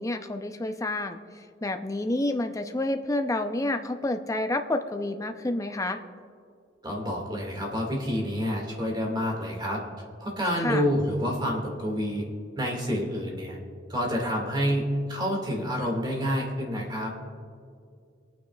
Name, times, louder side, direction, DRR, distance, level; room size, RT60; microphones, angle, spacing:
voice 1, 0.0-6.0 10.6-10.8, left 2 dB, 20° left, 6 dB, 0.6 m, -29 dB
voice 2, 6.8-9.8 10.2-12.2 12.6-13.6 13.9-17.1, equal, 25° right, 0 dB, 2.1 m, -28 dB
23.5 x 9.2 x 2.4 m, 2.3 s
head